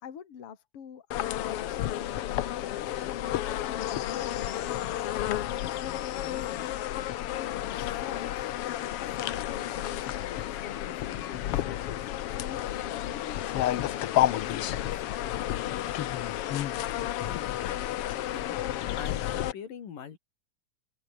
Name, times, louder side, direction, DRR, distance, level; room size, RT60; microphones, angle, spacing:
voice 1, 0.0-2.7 3.1-6.7 7.4-8.5 9.0-12.0 12.3-13.4 13.7-14.9 15.4-16.2, left 7 dB, 45° left, 3.1 m, -45 dB
sound 1, 1.1-19.5, left 13 dB, 70° left, 1.4 m, -31 dB
voice 2, 17.3-18.5 19.0-20.2, left 8 dB, 90° left, 4.5 m, -43 dB
omnidirectional pair, 3.8 m